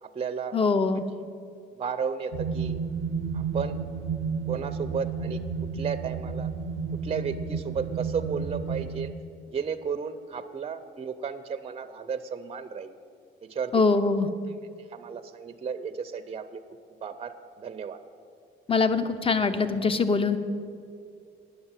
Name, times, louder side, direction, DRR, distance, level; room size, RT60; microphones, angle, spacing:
voice 1, 0.0-0.6 1.8-2.8 3.3-3.8 4.5-5.4 5.7-6.5 6.9-9.1 9.5-13.0 13.4-13.8 14.9-16.6 17.0-18.0, right 6 dB, 30° right, 9 dB, 0.5 m, -33 dB
voice 2, 0.5-1.0 13.7-14.3 18.7-20.4, left 4 dB, 25° left, 11 dB, 0.7 m, -23 dB
sound 1, 2.3-9.1, right 5 dB, 90° right, 0.5 m, -32 dB
9.7 x 6.6 x 8.9 m, 2.3 s
cardioid pair, 90°, 20 cm